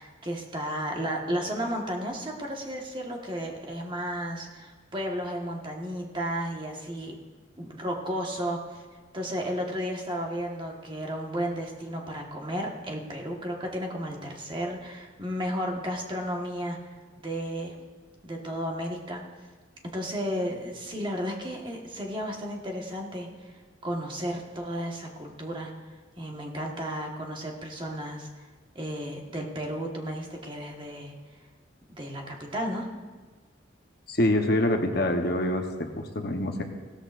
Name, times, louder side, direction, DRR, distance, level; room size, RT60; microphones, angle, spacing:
voice 1, 0.0-7.2 7.6-8.8 9.1-16.9 17.2-17.8 18.2-19.2 19.9-25.7 26.2-28.4 28.7-31.1 31.9-32.9, equal, 25° right, 0 dB, 1.4 m, -33 dB
voice 2, 34.1-36.6, left 1 dB, 55° left, 4 dB, 1.0 m, -25 dB
16.5 x 13.5 x 2.5 m, 1.4 s
head